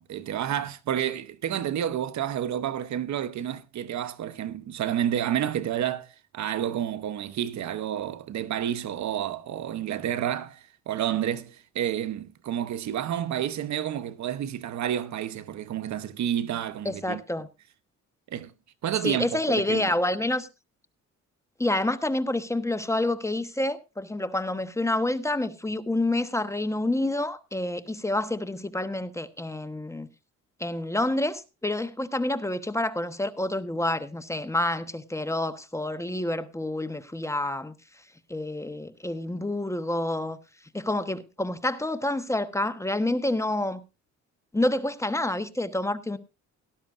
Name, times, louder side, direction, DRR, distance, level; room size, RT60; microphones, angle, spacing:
voice 1, 0.0-6.1 6.3-17.2 18.3-18.5 18.8-19.9, right 10 dB, 65° right, 1.0 m, -30 dB
voice 2, 16.8-17.5 19.0-20.5 21.6-30.1 30.6-37.7 38.3-40.4 40.7-43.8 44.5-46.2, left 1 dB, 10° left, 1.2 m, -28 dB
17.5 x 12.5 x 2.6 m
cardioid pair, 90°, 30 cm